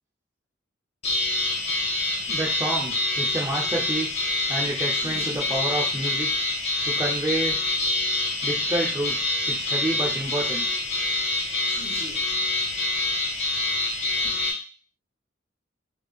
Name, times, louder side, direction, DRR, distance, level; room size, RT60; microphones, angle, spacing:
sound 1, 1.0-14.5, left 2 dB, 35° left, 0.8 m, -26 dB
voice 1, 2.3-4.2 4.5-6.3 6.8-7.6 8.4-10.7 14.2-14.3, right 1 dB, 15° right, -3 dB, 0.4 m, -29 dB
3.4 x 2.3 x 3.4 m, 0.37 s
head